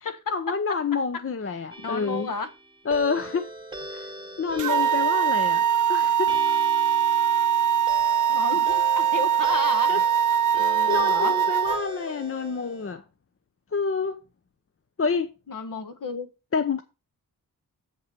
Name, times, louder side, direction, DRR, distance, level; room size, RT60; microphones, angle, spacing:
voice 1, 0.0-2.3 2.9-3.5 3.9-4.1 4.4-5.6 5.9-6.3 9.9-10.0 10.9-13.0 13.7-14.2 15.0-15.3 16.5-16.8, left 5 dB, 40° left, 0.7 m, -28 dB
voice 2, 1.6-2.5 8.3-9.9 10.6-11.3 15.5-16.3, left 4 dB, 60° left, 1.5 m, -32 dB
sound 1, 1.7-12.9, right 2 dB, 15° right, 1.2 m, -41 dB
sound 2, 4.6-11.8, right 9 dB, 55° right, 0.7 m, -22 dB
7.6 x 5.6 x 5.8 m
wide cardioid pair, 110°, 36 cm